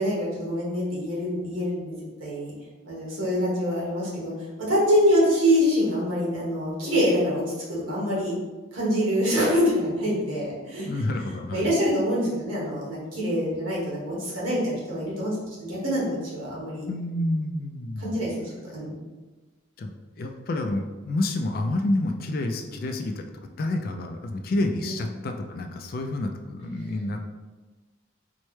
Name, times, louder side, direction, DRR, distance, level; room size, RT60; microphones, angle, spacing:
voice 1, 0.0-1.9 2.2-2.5 2.8-4.3 4.6-7.4 7.7-8.3 8.7-10.9 11.5-16.8 18.0-19.0 24.8-25.0, equal, 85° right, -6 dB, 1.4 m, -25 dB
voice 2, 10.8-11.7 16.9-18.2 19.8-19.9 20.2-23.3 23.6-27.3, left 1 dB, 45° left, 4 dB, 0.3 m, -29 dB
4.4 x 2.1 x 3.1 m, 1.2 s
head